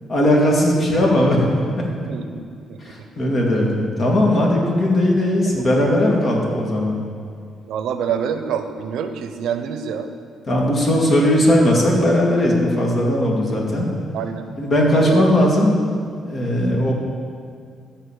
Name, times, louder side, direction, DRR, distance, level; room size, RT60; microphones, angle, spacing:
voice 1, 0.1-1.5 2.8-7.0 10.5-13.9 14.6-15.7 16.2-16.9, left 1 dB, 45° left, -1 dB, 2.1 m, -18 dB
voice 2, 1.9-2.4 2.7-2.8 5.6-5.7 7.7-10.1 14.1-14.4 14.8-15.4, right 7 dB, 80° right, 7 dB, 0.7 m, -26 dB
12.0 x 4.2 x 7.0 m, 2.2 s
cardioid pair, 90°, 0 cm